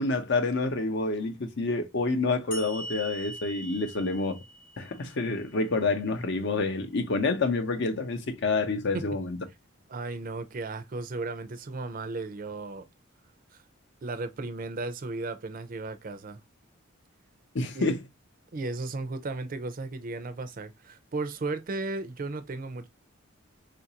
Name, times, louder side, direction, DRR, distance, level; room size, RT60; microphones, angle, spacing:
voice 1, 0.0-4.4 4.8-9.4 17.5-18.0, left 3 dB, 55° left, 0.6 m, -28 dB
sound 1, 2.5-5.9, equal, 40° left, 0.9 m, -42 dB
voice 2, 9.9-12.9 14.0-16.4 17.7-17.9 18.5-22.9, right 3 dB, 40° right, 0.5 m, -35 dB
3.9 x 2.5 x 2.7 m
head